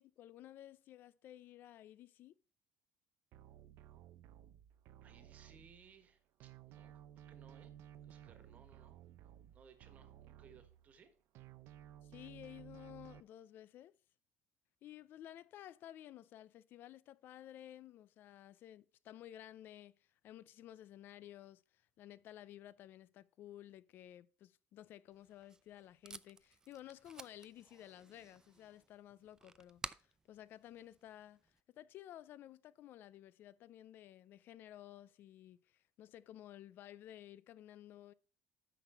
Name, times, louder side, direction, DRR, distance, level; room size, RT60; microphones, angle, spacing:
voice 1, 0.0-2.4 12.0-14.0 14.8-38.1, left 12 dB, 50° left, 0.4 m, -54 dB
sound 1, 3.3-6.1 6.4-11.1 11.3-13.2, right 11 dB, 65° right, 0.6 m, -57 dB
voice 2, 5.0-7.0 7.3-7.7 8.0-9.0 9.5-11.2, right 6 dB, 35° right, 1.5 m, -63 dB
Packing tape duct tape, 25.1-31.6, right 4 dB, 15° right, 0.3 m, -54 dB
9.1 x 6.1 x 4.5 m
cardioid pair, 155°, 4 cm